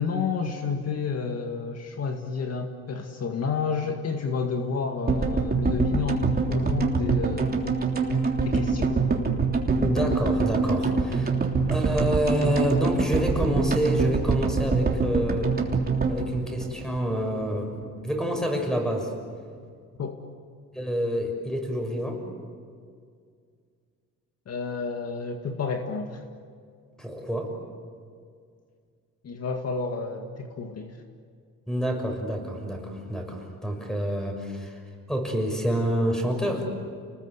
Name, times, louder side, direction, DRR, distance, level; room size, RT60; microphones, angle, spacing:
voice 1, 0.0-7.6 8.4-8.9 20.0-20.2 24.5-26.2 29.2-31.0, left 5 dB, 50° left, 4 dB, 2.0 m, -30 dB
sound 1, 5.1-17.3 17.5-17.6 17.8-17.9, right 4 dB, 30° right, 3.3 m, -25 dB
voice 2, 9.7-11.3 11.7-15.5 16.1-17.7 18.0-19.1 20.7-22.2 27.0-27.5 31.7-34.8 35.1-36.7, equal, ahead, 3 dB, 6.4 m, -27 dB
30.0 x 20.5 x 8.2 m, 2.1 s
cardioid pair, 110°, 31 cm